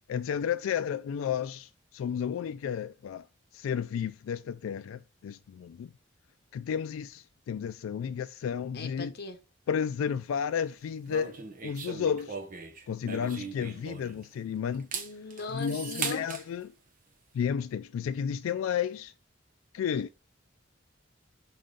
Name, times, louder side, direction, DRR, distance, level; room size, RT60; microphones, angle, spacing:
voice 1, 0.0-3.3 3.5-5.9 6.5-9.1 9.7-12.4 12.9-14.9 15.5-16.7 17.3-19.1 19.7-20.2, left 7 dB, 90° left, 0.3 m, -32 dB
voice 2, 8.7-9.4 14.9-16.3 19.9-20.0, left 3 dB, 50° left, 1.0 m, -39 dB
sound 1, 11.1-14.3 14.7-16.4, right 5 dB, 45° right, 0.9 m, -39 dB
5.4 x 3.8 x 5.0 m
head